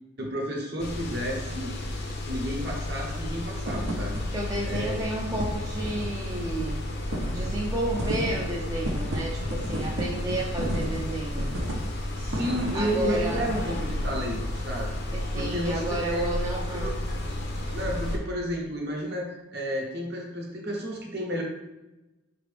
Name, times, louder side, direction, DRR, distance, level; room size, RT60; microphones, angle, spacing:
voice 1, 0.2-1.7 2.2-4.1 4.6-5.0 12.2-14.9 15.3-16.3 16.8-16.9 17.7-21.4, equal, 55° right, -1 dB, 1.1 m, -31 dB
sound 1, 0.8-18.2, left 1 dB, 55° left, 0.7 m, -32 dB
sound 2, 3.0-3.3 3.6-4.2 4.4-4.8 5.0-12.9 13.3-13.6, right 1 dB, 85° right, 0.8 m, -33 dB
voice 2, 4.3-6.8 7.3-11.5 12.7-13.4 15.1-17.0, right 1 dB, 15° right, -4 dB, 0.4 m, -31 dB
4.9 x 3.0 x 3.3 m, 1.0 s
head